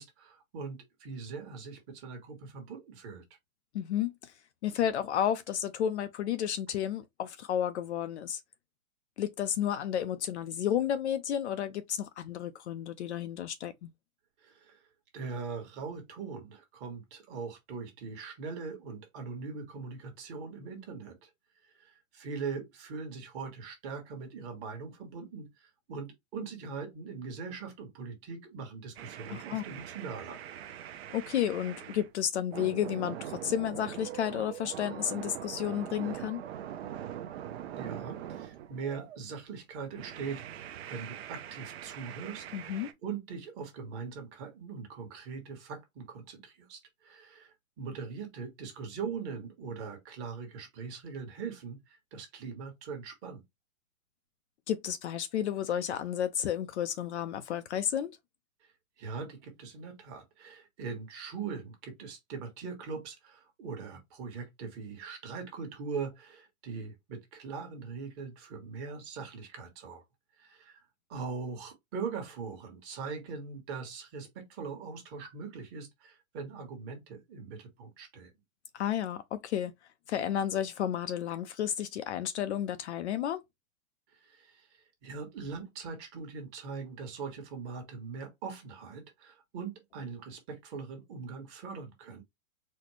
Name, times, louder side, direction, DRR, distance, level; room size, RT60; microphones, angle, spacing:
voice 1, 0.0-3.2 14.4-14.9 15.1-21.3 21.6-30.4 37.8-53.4 58.6-70.0 70.4-70.8 71.1-78.3 84.1-92.2, right 5 dB, 25° right, 1.2 m, -41 dB
voice 2, 3.7-4.3 4.6-8.4 9.2-13.9 29.3-29.6 31.1-36.4 42.5-42.9 54.7-58.1 78.7-79.7 80.1-83.4, left 10 dB, 55° left, 0.5 m, -32 dB
sound 1, 29.0-32.1 32.5-39.2 39.9-42.9, right 10 dB, 50° right, 0.6 m, -42 dB
4.2 x 2.1 x 3.0 m
hypercardioid pair, 150°, 42 cm